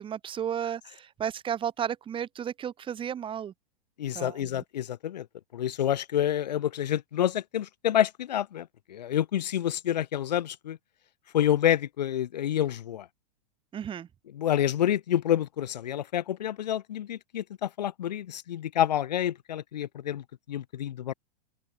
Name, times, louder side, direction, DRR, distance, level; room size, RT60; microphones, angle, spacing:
voice 1, 0.0-3.5 4.1-4.6 13.7-14.1, right 9 dB, 25° right, 6.4 m, -33 dB
voice 2, 4.0-5.3 5.5-10.8 11.3-13.1 14.3-21.1, left 11 dB, 85° left, 1.9 m, -28 dB
open air
hypercardioid pair, 130°, 21 cm